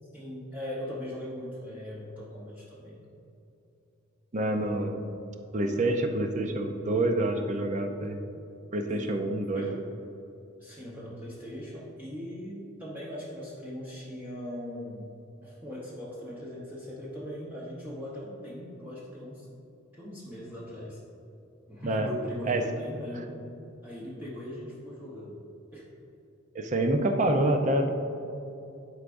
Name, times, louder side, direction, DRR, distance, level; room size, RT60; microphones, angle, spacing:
voice 1, 0.1-3.0 8.9-9.2 9.5-9.9 10.6-15.1 15.4-19.5 19.9-21.0 21.7-23.5 23.8-25.3 25.7-25.9, left 1 dB, 10° right, -8 dB, 0.9 m, -40 dB
voice 2, 4.3-5.0 5.5-8.2 8.7-9.7 21.8-22.1 22.5-22.6 26.5-27.9, right 1 dB, 35° right, 5 dB, 0.5 m, -27 dB
11.5 x 4.7 x 2.5 m, 2.9 s
head